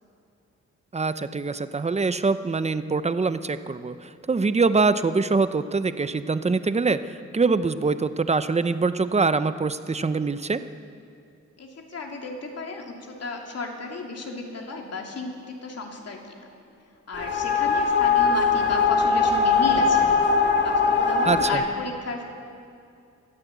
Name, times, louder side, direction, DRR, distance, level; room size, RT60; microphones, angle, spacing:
voice 1, 0.9-10.6 21.3-21.6, right 4 dB, 25° right, 12 dB, 0.7 m, -24 dB
voice 2, 11.6-15.3 15.6-16.2 17.1-20.2 20.6-22.2, left 3 dB, 60° left, 1 dB, 2.9 m, -33 dB
sound 1, 17.1-21.5, left 5 dB, 40° left, 2.3 m, -21 dB
22.0 x 14.5 x 8.3 m, 2.4 s
wide cardioid pair, 145°, 29 cm